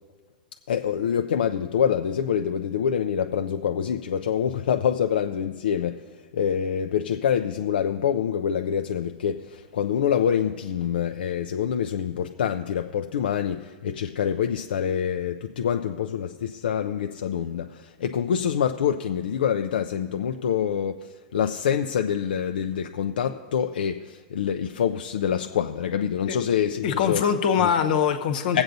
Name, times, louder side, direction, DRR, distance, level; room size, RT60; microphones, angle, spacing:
voice 1, 0.7-21.1 21.3-27.2 27.6-27.7 28.5-28.6, left 8 dB, 90° left, 0.4 m, -26 dB
voice 2, 26.8-28.6, left 7 dB, 70° left, 0.9 m, -23 dB
21.5 x 7.9 x 2.6 m
hypercardioid pair, 130°, 5 cm